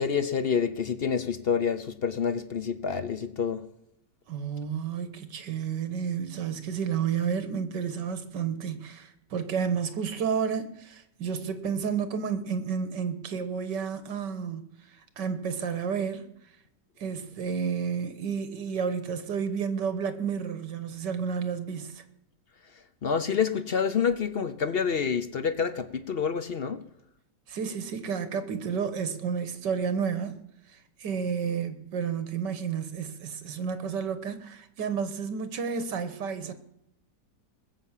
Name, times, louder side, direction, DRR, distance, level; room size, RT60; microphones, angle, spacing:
voice 1, 0.0-3.6 23.0-26.8, left 6 dB, 50° left, 0.7 m, -28 dB
voice 2, 4.3-14.7 15.2-16.3 17.0-22.0 27.5-30.4 31.0-36.5, right 6 dB, 80° right, 1.9 m, -31 dB
20.0 x 7.4 x 7.4 m
omnidirectional pair, 1.9 m